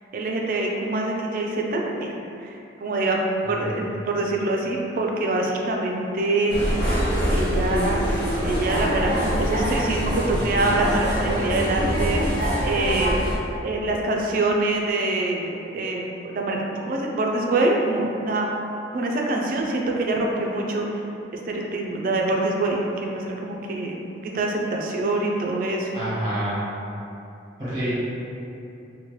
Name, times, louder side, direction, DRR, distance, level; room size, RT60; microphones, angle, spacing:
voice 1, 0.1-3.2 3.4-6.6 7.3-8.0 8.4-12.2 12.6-13.2 13.6-18.5 18.9-21.0 21.3-26.1, right 2 dB, 50° right, 0 dB, 0.3 m, -25 dB
voice 2, 3.4-3.9 25.9-26.6 27.6-28.0, right 1 dB, 25° right, -10 dB, 1.0 m, -28 dB
sound 1, 6.5-13.3, equal, 65° left, 0.9 m, -24 dB
2.9 x 2.1 x 3.0 m, 2.8 s
head